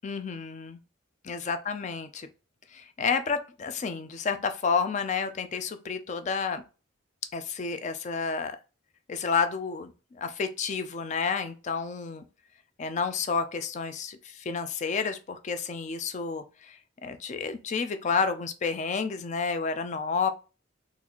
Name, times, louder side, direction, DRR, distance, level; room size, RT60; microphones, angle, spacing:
voice 1, 0.0-0.8 1.2-2.3 2.7-6.6 7.3-8.6 9.1-12.2 12.8-20.3, left 5 dB, 35° left, 9 dB, 0.3 m, -30 dB
3.9 x 2.5 x 2.9 m, 0.33 s
head